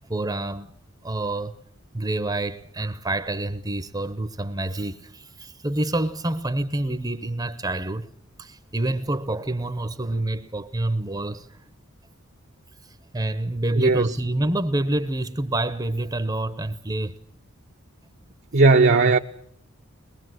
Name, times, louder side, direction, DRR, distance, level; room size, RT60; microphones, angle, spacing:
voice 1, 0.1-0.7 1.0-1.5 1.9-8.1 8.4-11.6 12.8-17.2, right 1 dB, 20° right, 0.9 m, -27 dB
voice 2, 13.8-14.1 18.5-19.2, right 3 dB, 55° right, 0.9 m, -16 dB
23.5 x 21.5 x 7.9 m
head